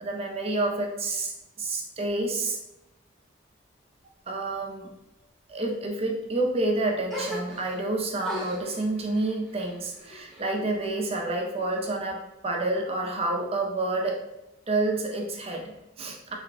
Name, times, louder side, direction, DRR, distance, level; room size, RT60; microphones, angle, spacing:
voice 1, 0.0-2.6 4.3-4.9 5.5-14.2 14.7-16.3, right 2 dB, 30° right, 1 dB, 0.5 m, -29 dB
sound 1, 7.1-7.9 8.2-11.0 11.3-12.1, equal, ahead, 0.9 m, -39 dB
3.2 x 2.2 x 4.0 m, 0.94 s
head